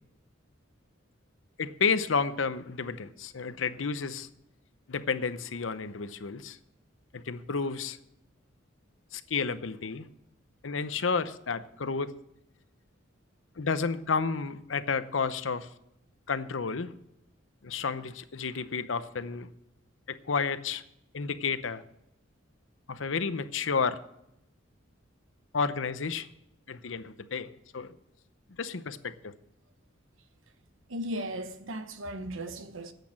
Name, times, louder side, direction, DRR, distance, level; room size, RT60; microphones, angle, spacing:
voice 1, 1.6-4.3 4.9-6.6 7.1-8.0 9.1-10.1 10.6-12.1 13.6-15.7 16.3-16.9 17.6-19.5 20.1-20.8 21.1-21.8 22.9-24.0 25.5-26.3 26.7-28.0 28.6-29.3, left 5 dB, 80° left, 0.7 m, -31 dB
voice 2, 30.9-32.9, right 1 dB, 90° right, 1.1 m, -36 dB
10.5 x 8.3 x 7.3 m
head